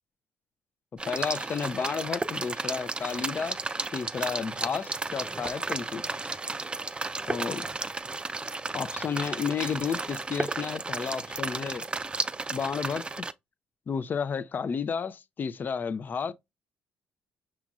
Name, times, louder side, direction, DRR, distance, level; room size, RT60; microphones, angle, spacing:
sound 1, 1.0-13.3, right 3 dB, 20° right, 0.4 m, -33 dB
voice 1, 1.1-3.6 3.9-6.3 7.3-7.7 8.7-11.9 12.5-13.2 13.9-16.3, left 6 dB, 45° left, 0.5 m, -32 dB
5.8 x 3.0 x 2.4 m
hypercardioid pair, 55°, 5 cm